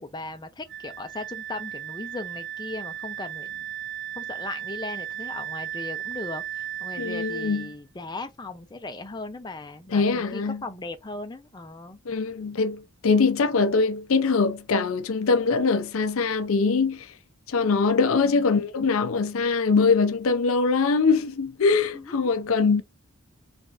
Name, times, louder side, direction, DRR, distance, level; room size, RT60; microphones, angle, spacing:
voice 1, 0.0-3.7 4.2-12.0 18.2-18.6 21.9-22.3, left 2 dB, 20° left, 0.5 m, -38 dB
Wind instrument woodwind instrument, 0.7-7.7, right 11 dB, 50° right, 0.7 m, -35 dB
voice 2, 7.0-7.7 9.9-10.6 12.1-17.1 17.5-22.8, left 4 dB, 70° left, 0.5 m, -22 dB
3.8 x 3.3 x 2.4 m
head